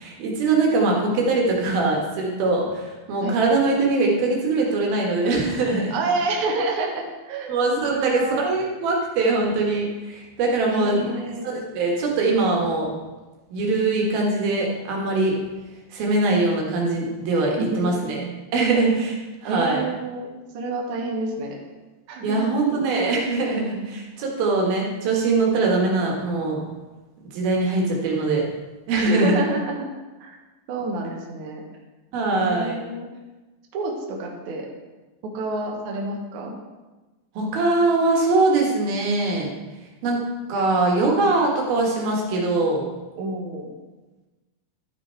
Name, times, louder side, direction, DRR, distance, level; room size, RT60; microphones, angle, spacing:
voice 1, 0.0-5.9 7.5-11.1 11.4-12.9 13.5-15.4 15.9-18.3 18.5-19.8 22.2-26.6 27.3-28.4 28.9-29.4 32.1-32.8 37.4-39.5 40.0-42.8, right 3 dB, 80° right, -1 dB, 3.4 m, -22 dB
voice 2, 5.9-7.6 7.9-8.4 10.7-11.5 17.3-17.9 19.4-20.3 20.5-21.6 22.1-22.4 28.9-29.9 30.2-30.4 30.7-31.6 32.3-33.1 33.7-34.7 35.2-36.5 43.2-43.7, right 3 dB, 65° right, 0 dB, 2.3 m, -28 dB
12.0 x 6.2 x 4.4 m, 1.2 s
omnidirectional pair, 4.3 m